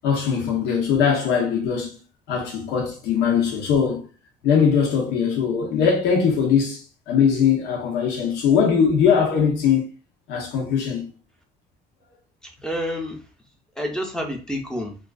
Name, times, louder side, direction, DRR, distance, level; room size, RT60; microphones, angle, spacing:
voice 1, 0.0-2.0 2.3-4.0 4.4-9.9 10.3-11.1, left 7 dB, 85° left, 0.7 m, -21 dB
voice 2, 12.4-13.3 13.8-15.0, equal, 5° left, 0.6 m, -29 dB
2.4 x 2.3 x 2.3 m
cardioid pair, 110°, 17 cm